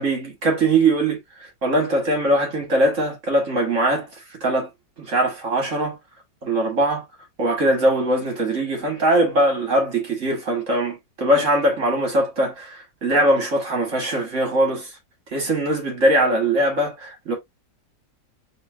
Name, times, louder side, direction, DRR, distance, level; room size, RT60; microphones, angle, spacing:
voice 1, 0.0-4.1 4.4-4.7 5.0-6.0 6.4-7.0 7.4-14.9 15.3-17.4, right 1 dB, 50° right, 1.7 m, -21 dB
5.4 x 3.4 x 2.4 m
omnidirectional pair, 1.8 m